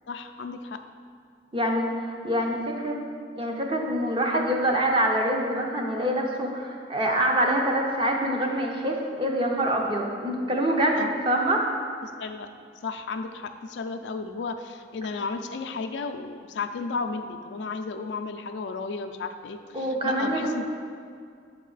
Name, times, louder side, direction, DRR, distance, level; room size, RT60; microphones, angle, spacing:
voice 1, 0.1-0.8 10.9-11.3 12.0-12.5 12.8-20.6, left 4 dB, 80° left, 7 dB, 0.4 m, -34 dB
voice 2, 1.5-3.0 3.4-11.6 19.7-20.6, right 1 dB, 30° right, 0 dB, 0.7 m, -25 dB
7.3 x 4.1 x 3.9 m, 2.2 s
head